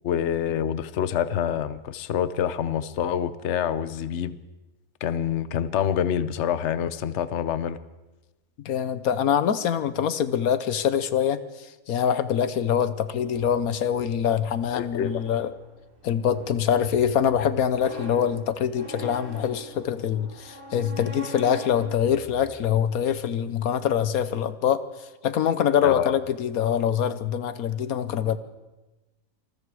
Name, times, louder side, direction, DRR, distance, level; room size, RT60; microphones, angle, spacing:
voice 1, 0.0-4.4 5.0-7.8 14.7-15.1 25.8-26.2, left 9 dB, 60° left, 14 dB, 1.1 m, -26 dB
voice 2, 8.6-15.5 16.0-24.8 25.2-28.4, left 8 dB, 85° left, 13 dB, 1.4 m, -24 dB
sound 1, 13.2-23.2, right 2 dB, 75° right, 4.2 m, -45 dB
26.5 x 20.0 x 4.8 m, 1.1 s
omnidirectional pair, 1.5 m